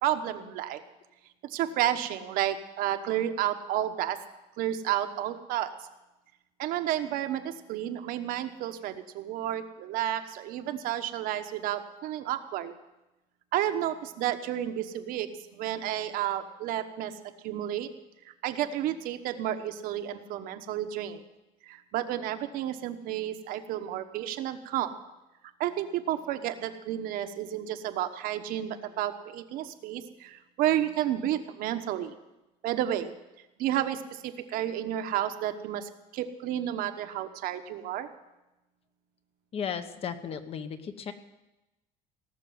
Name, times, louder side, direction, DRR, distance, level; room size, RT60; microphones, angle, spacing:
voice 1, 0.0-0.8 1.4-4.2 4.6-5.7 6.6-12.7 13.5-17.1 17.4-17.9 18.4-21.2 21.7-24.9 25.6-32.2 32.6-33.1 33.6-38.1, right 12 dB, 65° right, 8 dB, 1.2 m, -31 dB
voice 2, 39.5-41.1, left 7 dB, 40° left, 10 dB, 1.1 m, -35 dB
18.0 x 6.8 x 9.4 m, 1.0 s
cardioid pair, 145°, 16 cm